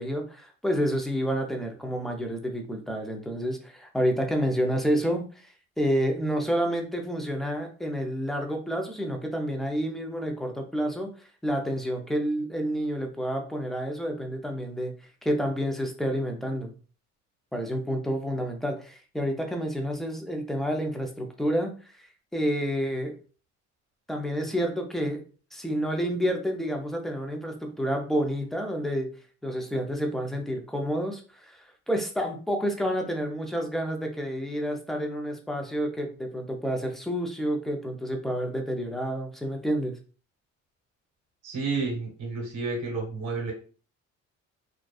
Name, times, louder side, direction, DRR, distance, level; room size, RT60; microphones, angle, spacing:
voice 1, 0.0-5.5 5.8-11.1 11.4-14.9 15.2-16.7 17.5-21.8 22.3-23.2 24.1-25.2 25.5-29.1 29.4-40.0, equal, ahead, 3 dB, 0.5 m, -29 dB
voice 2, 41.4-43.5, right 4 dB, 70° right, -1 dB, 1.0 m, -30 dB
2.5 x 2.3 x 2.3 m, 0.37 s
cardioid pair, 90°, 30 cm